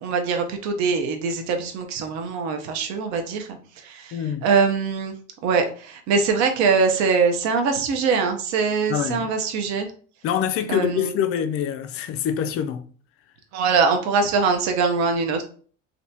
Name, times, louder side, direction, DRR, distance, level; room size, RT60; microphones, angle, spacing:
voice 1, 0.0-4.2 4.4-5.1 5.4-9.9 10.7-11.1 13.5-15.4, right 5 dB, 65° right, 0.8 m, -22 dB
voice 2, 4.1-4.5 8.9-9.3 10.2-12.8, left 9 dB, 50° left, 0.4 m, -25 dB
3.4 x 2.7 x 2.7 m
cardioid pair, 120°, 29 cm